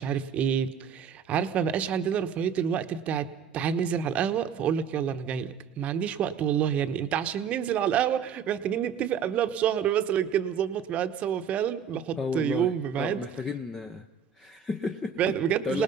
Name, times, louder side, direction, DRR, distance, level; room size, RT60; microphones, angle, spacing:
voice 1, 0.0-3.3 3.5-13.2 15.2-15.8, right 9 dB, 30° right, 1.1 m, -28 dB
voice 2, 12.2-14.1 14.4-15.3 15.6-15.8, left 4 dB, 15° left, 0.8 m, -33 dB
27.5 x 19.5 x 5.5 m
supercardioid pair, 150°, 5 cm